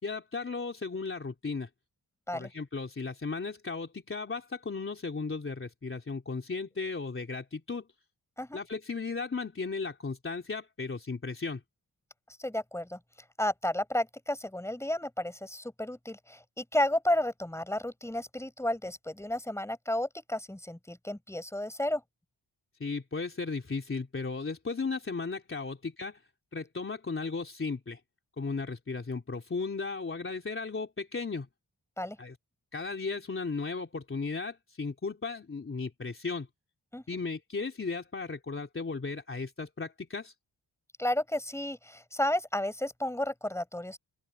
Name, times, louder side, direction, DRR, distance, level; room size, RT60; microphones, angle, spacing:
voice 1, 0.0-1.7 2.3-7.9 8.5-11.6 22.8-26.2 26.5-28.0 28.4-31.5 32.2-32.4 32.7-36.5 37.1-40.3, left 4 dB, 25° left, 3.5 m, -35 dB
voice 2, 12.4-13.0 13.4-22.0 32.0-32.2 36.9-37.0 41.0-44.0, left 1 dB, 5° left, 6.1 m, -32 dB
open air
wide cardioid pair, 155°, 45 cm